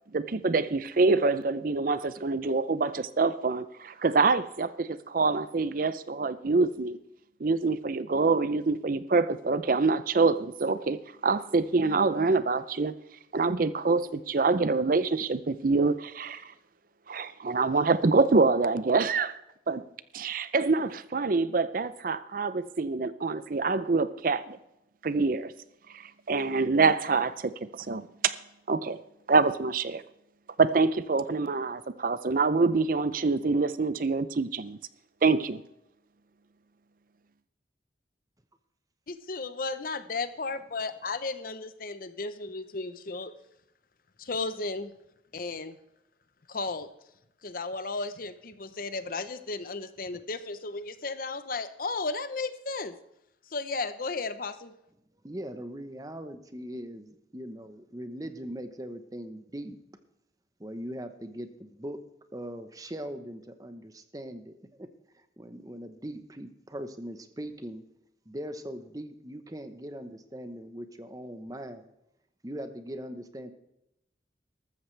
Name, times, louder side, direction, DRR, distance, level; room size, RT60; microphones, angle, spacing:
voice 1, 0.1-7.0 7.4-12.9 13.3-16.4 17.1-19.4 19.7-19.8 20.1-24.6 25.0-25.5 25.9-28.3 28.7-29.0 29.3-30.0 30.6-34.8 35.2-35.6, right 4 dB, 50° right, 14 dB, 0.5 m, -26 dB
voice 2, 39.1-43.4 44.2-44.9 45.3-45.8 46.5-46.9 47.4-53.0 53.5-54.7, left 3 dB, 50° left, 12 dB, 0.9 m, -34 dB
voice 3, 55.2-59.8 60.6-62.0 62.3-64.9 65.1-67.8 68.3-71.9 72.4-73.5, equal, 20° right, 9 dB, 1.0 m, -40 dB
13.5 x 13.5 x 3.3 m, 0.83 s
head